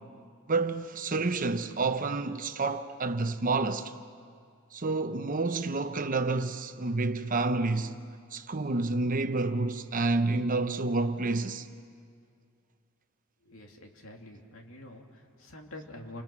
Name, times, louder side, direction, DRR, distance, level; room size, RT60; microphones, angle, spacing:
voice 1, 0.5-3.9 4.7-8.0 8.3-11.7, right 3 dB, 40° right, 0.9 m, -29 dB
voice 2, 13.4-16.2, left 1 dB, 75° left, 2.7 m, -47 dB
30.0 x 27.0 x 6.0 m
head